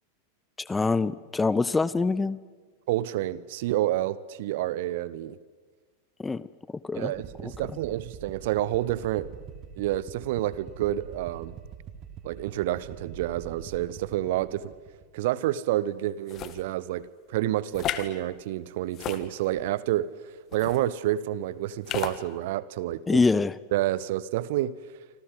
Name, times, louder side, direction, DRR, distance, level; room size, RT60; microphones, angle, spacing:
voice 1, 0.6-2.4 6.2-6.5 6.8-7.1 7.4-7.5 23.1-23.6, left 3 dB, 10° left, 19 dB, 0.7 m, -24 dB
voice 2, 2.9-5.4 6.9-9.3 9.8-11.5 12.2-14.6 15.1-20.1 20.5-23.2 23.7-24.7, right 14 dB, 50° right, 19 dB, 1.1 m, -29 dB
sound 1, 7.1-15.3, right 8 dB, 30° right, 2.4 m, -44 dB
sound 2, 16.3-16.6 17.7-18.1 18.9-19.7 20.5-20.8 21.8-22.2, left 11 dB, 30° left, 1.9 m, -33 dB
28.0 x 26.0 x 7.7 m, 1.5 s
figure-of-eight pair, 90°, 0 cm